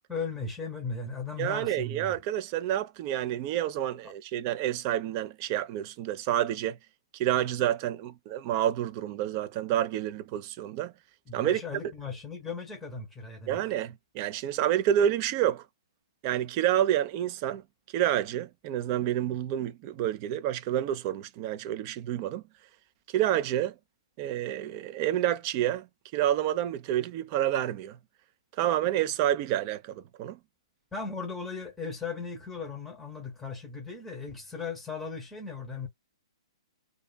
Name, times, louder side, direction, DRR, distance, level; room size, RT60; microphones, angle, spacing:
voice 1, 0.1-2.1 4.0-4.1 11.3-13.6 30.9-35.9, left 4 dB, 5° left, 0.8 m, -37 dB
voice 2, 1.4-6.8 7.2-10.9 11.3-11.6 13.5-15.6 16.2-17.6 17.9-22.4 23.1-23.7 24.2-25.9 26.1-28.0 28.6-30.4, right 11 dB, 35° right, 0.4 m, -28 dB
2.5 x 2.3 x 2.2 m
figure-of-eight pair, 115°, 3 cm